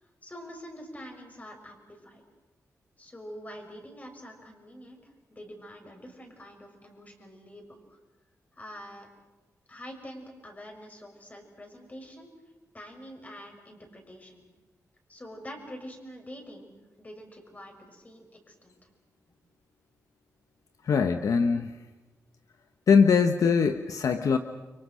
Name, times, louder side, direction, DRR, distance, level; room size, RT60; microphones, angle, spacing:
voice 1, 0.2-2.2 3.0-8.0 8.5-9.1 9.7-12.3 12.7-14.4 15.1-16.7 17.0-18.8 19.3-19.4, equal, 25° left, 3 dB, 6.4 m, -46 dB
voice 2, 20.8-21.7 22.9-24.4, left 5 dB, 75° left, 7 dB, 1.1 m, -22 dB
30.0 x 24.5 x 6.5 m, 1.2 s
cardioid pair, 85°, 6 cm